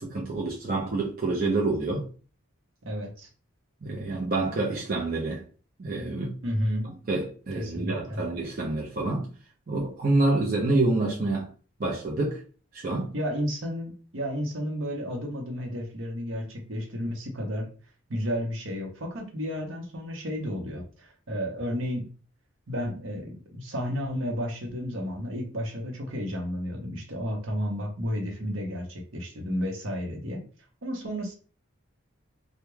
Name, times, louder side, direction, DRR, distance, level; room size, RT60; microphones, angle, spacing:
voice 1, 0.0-2.1 3.8-5.4 5.8-6.3 7.1-9.3 9.7-11.5 11.8-12.4 12.7-13.1, right 2 dB, 40° right, 0.5 m, -27 dB
voice 2, 2.8-3.3 6.4-6.9 7.5-8.2 13.1-17.7 18.1-22.1 22.7-30.4 30.8-31.4, equal, 70° right, 0.8 m, -32 dB
2.3 x 2.1 x 3.0 m
head